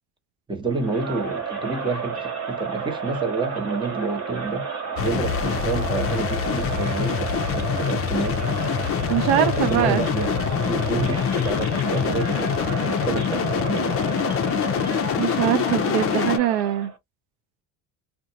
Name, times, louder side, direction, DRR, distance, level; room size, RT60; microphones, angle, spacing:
voice 1, 0.5-8.6 9.3-14.1, right 3 dB, 10° right, 0.9 m, -29 dB
Crowd, 0.7-17.0, right 5 dB, 40° right, 1.3 m, -31 dB
sound 1, 5.0-16.4, left 9 dB, 35° left, 0.5 m, -25 dB
voice 2, 9.1-10.1 15.2-16.9, right 12 dB, 80° right, 0.6 m, -22 dB
2.5 x 2.2 x 2.7 m
supercardioid pair, 95°, 38 cm